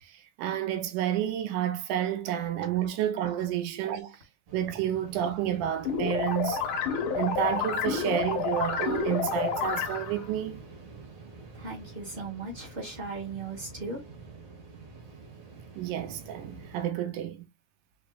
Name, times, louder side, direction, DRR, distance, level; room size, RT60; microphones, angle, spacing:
voice 1, 0.0-4.2 4.5-6.6 7.2-10.6 15.8-17.5, right 10 dB, 80° right, 2.2 m, -30 dB
sound 1, 4.5-16.9, right 4 dB, 60° right, 2.7 m, -47 dB
sound 2, 5.8-10.3, left 6 dB, 80° left, 1.1 m, -29 dB
voice 2, 11.5-14.0, right 3 dB, 25° right, 1.1 m, -37 dB
5.2 x 3.4 x 2.3 m
omnidirectional pair, 3.7 m